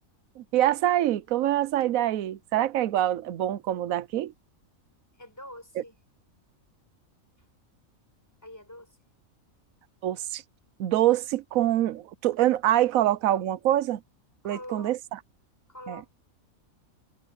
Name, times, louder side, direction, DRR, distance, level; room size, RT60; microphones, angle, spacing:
voice 1, 0.4-4.3 10.0-10.4 10.8-14.0 14.4-15.0 15.9-16.0, right 13 dB, 80° right, 1.1 m, -25 dB
voice 2, 5.1-6.0 7.4-7.5 8.4-9.0 14.4-15.0 15.7-16.1, left 1 dB, 10° left, 4.8 m, -44 dB
omnidirectional pair, 1.4 m